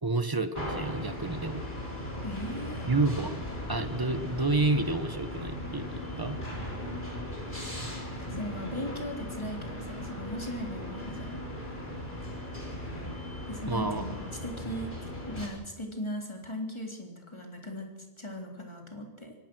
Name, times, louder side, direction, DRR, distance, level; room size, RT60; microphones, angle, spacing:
voice 1, 0.0-1.7 2.9-3.4 3.7-6.4 13.7-14.0, right 2 dB, 20° right, 9 dB, 1.3 m, -29 dB
sound 1, 0.5-15.5, left 1 dB, 50° left, 4.2 m, -38 dB
voice 2, 2.2-2.9 8.2-11.4 13.5-19.4, equal, 25° left, 1 dB, 3.6 m, -38 dB
24.5 x 18.0 x 6.2 m, 1.2 s
omnidirectional pair, 1.1 m